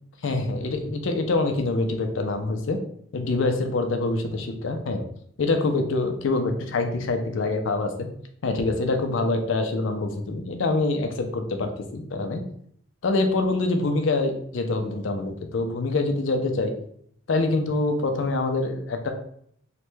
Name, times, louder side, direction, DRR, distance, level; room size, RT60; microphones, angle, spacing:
voice 1, 0.2-2.8 3.1-5.0 5.4-8.1 8.4-12.4 13.0-16.7 17.3-19.1, left 3 dB, 80° left, 6 dB, 0.5 m, -25 dB
3.2 x 2.2 x 3.1 m, 0.65 s
head